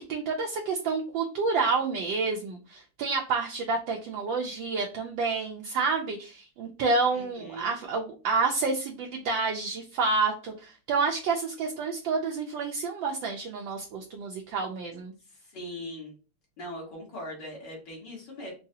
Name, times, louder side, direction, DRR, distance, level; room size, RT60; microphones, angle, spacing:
voice 1, 0.1-15.1, right 4 dB, 75° right, 1 dB, 1.2 m, -29 dB
voice 2, 7.1-7.7 15.5-16.1 16.6-18.5, left 1 dB, 55° left, -2 dB, 2.0 m, -40 dB
4.7 x 2.3 x 2.7 m, 0.34 s
omnidirectional pair, 2.4 m